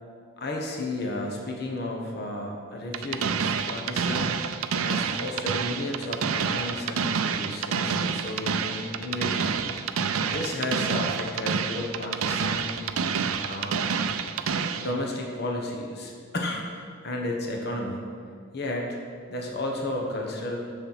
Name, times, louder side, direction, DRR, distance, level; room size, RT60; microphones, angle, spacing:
voice 1, 0.4-4.4 4.8-9.5 10.3-12.8 13.5-13.9 14.7-16.6 17.0-18.0 18.5-19.0 19.3-20.7, left 1 dB, 50° left, 0 dB, 1.2 m, -32 dB
sound 1, 2.9-14.9, right 6 dB, 90° right, 0.5 m, -28 dB
7.1 x 6.8 x 5.8 m, 2.1 s
head